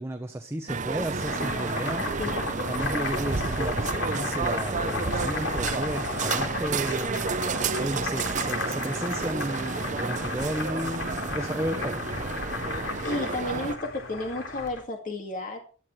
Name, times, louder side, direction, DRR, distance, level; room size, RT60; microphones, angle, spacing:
voice 1, 0.0-2.1 2.7-7.3 7.8-12.0, right 1 dB, 15° right, 6 dB, 1.0 m, -33 dB
sound 1, 0.7-13.8, right 4 dB, 40° right, 0.7 m, -31 dB
Boiling, 1.0-14.8, left 3 dB, 85° left, 4.0 m, -34 dB
voice 2, 2.2-2.6 13.0-15.6, left 2 dB, 45° left, 2 dB, 2.1 m, -32 dB
16.5 x 13.0 x 3.3 m, 0.39 s
head